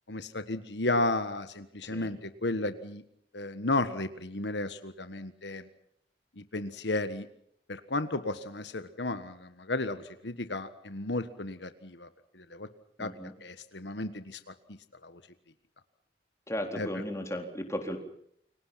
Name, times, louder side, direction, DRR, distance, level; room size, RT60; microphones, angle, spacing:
voice 1, 0.1-3.0 3.3-5.6 6.4-7.3 7.7-12.1 12.3-12.7 13.0-13.1 13.4-14.4 14.7-15.2 16.7-16.9, left 2 dB, 75° left, 10 dB, 1.5 m, -33 dB
voice 2, 13.0-13.3 16.5-18.0, equal, 15° left, 4 dB, 4.0 m, -35 dB
29.5 x 24.0 x 5.8 m, 0.69 s
head